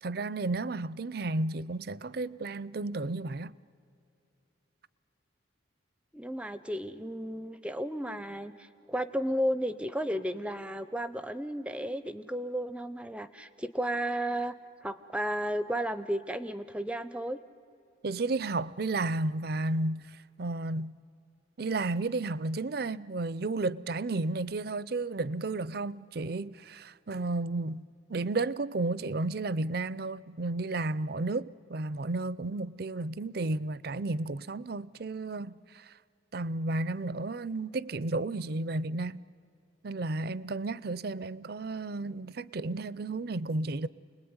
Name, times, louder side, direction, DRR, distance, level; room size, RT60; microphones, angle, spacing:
voice 1, 0.0-3.5 18.0-21.0 21.6-35.9 36.3-39.2 39.8-43.9, right 2 dB, 55° right, 0.5 m, -33 dB
voice 2, 6.1-14.5 14.8-17.4, equal, 5° right, 0.6 m, -33 dB
29.5 x 20.5 x 9.6 m
head